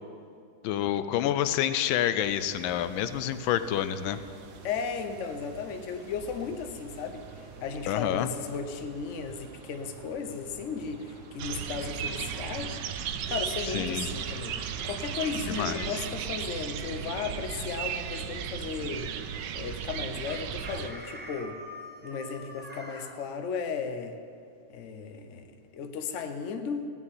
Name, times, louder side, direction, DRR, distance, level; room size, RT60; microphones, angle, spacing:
voice 1, 0.6-4.2 7.9-8.3 13.6-14.1 15.5-16.0, left 11 dB, 85° left, 12 dB, 1.4 m, -28 dB
sound 1, 2.2-12.8, right 5 dB, 55° right, 0.9 m, -48 dB
voice 2, 4.6-12.8 13.3-19.1 19.5-21.6 22.0-24.2 24.7-26.9, left 5 dB, 50° left, 7 dB, 0.9 m, -35 dB
sound 2, 11.4-20.9, right 8 dB, 70° right, 1.2 m, -35 dB
Chicken rooster, 20.3-23.1, equal, 10° right, 0.5 m, -44 dB
16.5 x 5.5 x 9.7 m, 2.4 s
omnidirectional pair, 2.1 m